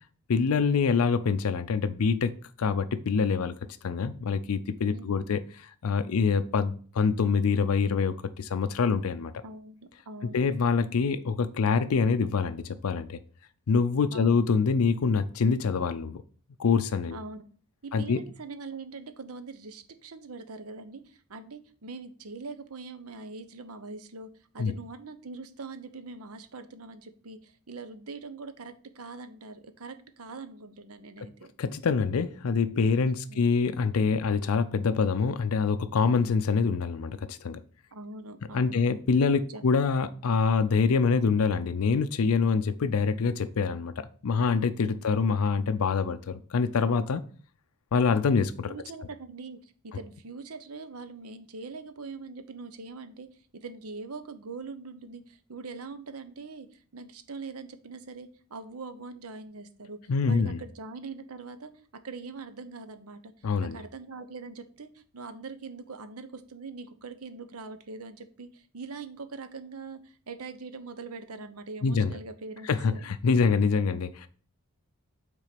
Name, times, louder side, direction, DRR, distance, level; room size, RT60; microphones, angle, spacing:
voice 1, 0.3-2.3 2.6-3.5 3.8-5.4 5.8-9.3 10.3-13.2 13.7-16.2 16.6-17.2 17.9-18.2 24.6-24.7 31.6-37.6 38.5-47.2 47.9-48.7 60.1-60.6 63.4-63.8 71.8-72.2 72.7-74.3, left 5 dB, 75° left, 0.5 m, -25 dB
voice 2, 4.9-5.3 9.4-10.5 14.1-14.4 17.1-17.4 17.8-31.5 33.1-33.4 37.9-38.9 39.5-39.7 48.6-53.3 53.5-63.3 63.6-73.1, right 4 dB, 80° right, 0.8 m, -42 dB
6.0 x 3.8 x 5.8 m
head